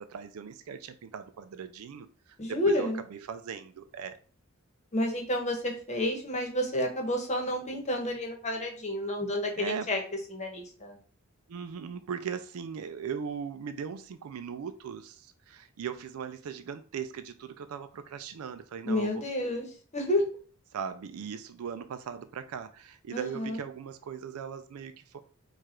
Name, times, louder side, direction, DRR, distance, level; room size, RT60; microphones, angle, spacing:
voice 1, 0.0-4.2 9.6-9.9 11.5-19.2 20.7-25.2, right 7 dB, 80° right, 10 dB, 0.4 m, -39 dB
voice 2, 2.4-3.0 4.9-10.0 10.3-11.0 18.8-19.7 19.9-20.2 23.1-23.6, left 1 dB, 35° left, 3 dB, 1.1 m, -30 dB
4.7 x 2.4 x 4.4 m, 0.41 s
head